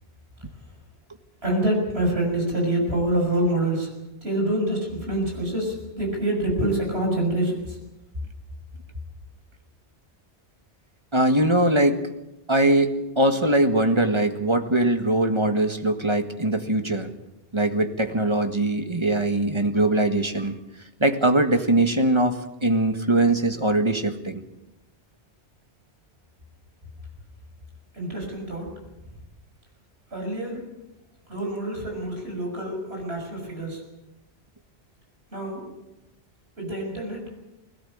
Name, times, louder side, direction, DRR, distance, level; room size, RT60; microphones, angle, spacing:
voice 1, 1.4-3.9 4.2-7.8 27.9-28.7 30.1-30.7 31.3-33.8 35.3-35.7 36.6-37.3, right 1 dB, 65° right, 1 dB, 6.6 m, -26 dB
voice 2, 11.1-12.1 12.5-17.1 17.5-20.5 21.0-24.4, right 1 dB, 25° right, 7 dB, 1.6 m, -21 dB
20.5 x 17.5 x 8.6 m, 0.97 s
omnidirectional pair, 1.1 m